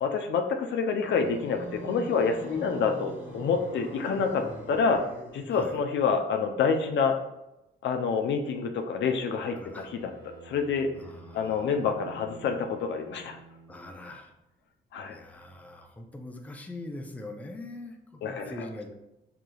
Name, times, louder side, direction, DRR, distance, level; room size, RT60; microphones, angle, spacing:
voice 1, 0.0-5.0 5.3-7.2 7.8-10.1 10.4-10.9 11.3-13.4 14.9-15.2 18.2-18.7, left 5 dB, 65° left, 5 dB, 0.5 m, -27 dB
sound 1, 0.9-5.6, right 1 dB, 10° right, 1.1 m, -42 dB
voice 2, 5.5-5.8 9.5-9.9 11.0-11.7 13.7-14.3 15.1-19.0, left 2 dB, 5° left, 3 dB, 0.5 m, -42 dB
Bowed string instrument, 9.6-14.0, right 3 dB, 90° right, 1.0 m, -50 dB
4.8 x 2.8 x 2.3 m, 0.92 s
cardioid pair, 90°, 20 cm